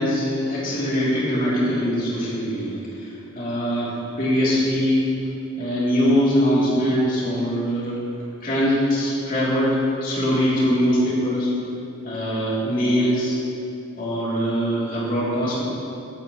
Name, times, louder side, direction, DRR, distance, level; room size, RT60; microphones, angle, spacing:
voice 1, 0.0-2.8 3.3-5.1 5.6-8.0 8.4-11.5 12.0-13.4 14.0-15.6, equal, 40° left, -8 dB, 2.7 m, -22 dB
17.5 x 9.2 x 3.0 m, 2.8 s
head